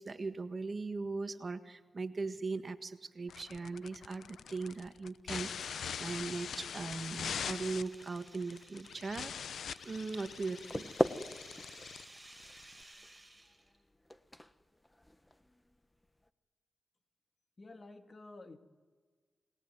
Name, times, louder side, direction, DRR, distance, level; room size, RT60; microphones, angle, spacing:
voice 1, 0.0-9.3 9.8-10.9, right 3 dB, 45° right, 9 dB, 1.7 m, -39 dB
sound 1, 3.3-12.8, left 7 dB, 85° left, 0.8 m, -43 dB
sound 2, 6.5-13.8, right 1 dB, 10° right, 7.0 m, -57 dB
sound 3, 10.4-16.3, left 1 dB, 15° left, 1.4 m, -40 dB
voice 2, 17.6-18.6, left 2 dB, 40° left, 7 dB, 2.4 m, -51 dB
29.0 x 20.5 x 9.6 m, 1.5 s
cardioid pair, 60°, 0 cm